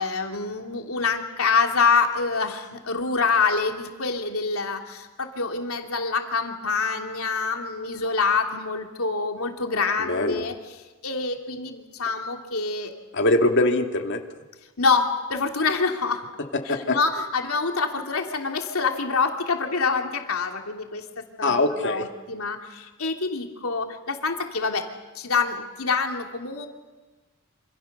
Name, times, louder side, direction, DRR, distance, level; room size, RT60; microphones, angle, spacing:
voice 1, 0.0-12.9 14.8-16.2 16.6-24.8 25.1-26.7, left 4 dB, 75° left, 3 dB, 2.9 m, -26 dB
voice 2, 10.1-10.5 13.1-14.2 16.7-17.0 21.4-22.1, left 2 dB, 55° left, 4 dB, 2.4 m, -22 dB
27.5 x 27.0 x 6.8 m, 1.2 s
head